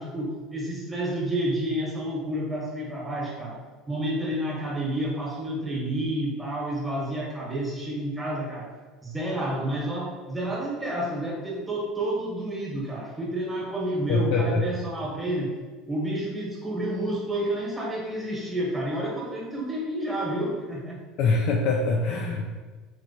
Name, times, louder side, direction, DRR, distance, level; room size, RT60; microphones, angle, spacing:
voice 1, 0.0-3.6 3.9-8.7 9.0-15.6 15.9-21.0, right 1 dB, 15° right, -4 dB, 1.2 m, -30 dB
voice 2, 14.1-14.7 21.2-22.4, left 3 dB, 55° left, 0 dB, 0.3 m, -23 dB
3.2 x 3.1 x 2.7 m, 1.4 s
figure-of-eight pair, 70°, 0 cm